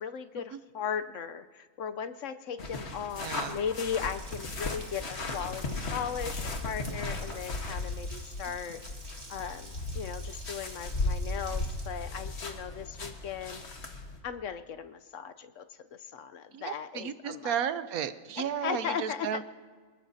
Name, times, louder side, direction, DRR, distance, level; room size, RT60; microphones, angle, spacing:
voice 1, 0.0-8.8 9.3-13.6 14.2-15.6 15.9-17.6 18.4-19.3, left 7 dB, 65° left, 10 dB, 1.0 m, -37 dB
sound 1, 2.6-14.2, left 2 dB, 50° left, 1.6 m, -36 dB
voice 2, 3.2-3.6 16.5-19.4, right 8 dB, 80° right, 12 dB, 1.2 m, -34 dB
Water tap faucet, 4.0-11.9, right 3 dB, 30° right, 1.4 m, -50 dB
26.0 x 20.0 x 2.7 m, 1.5 s
omnidirectional pair, 1.5 m